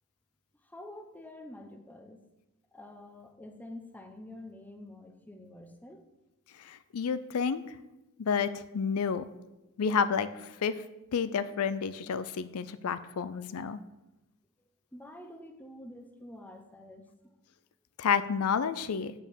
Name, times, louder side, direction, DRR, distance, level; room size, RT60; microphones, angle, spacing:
voice 1, 0.7-2.2 2.7-6.0 14.9-17.1, left 1 dB, 5° left, 5 dB, 0.8 m, -47 dB
voice 2, 6.6-7.6 8.2-9.3 9.8-10.8 11.1-13.8 18.0-19.1, left 6 dB, 85° left, 13 dB, 0.5 m, -30 dB
8.0 x 4.7 x 7.0 m, 0.96 s
head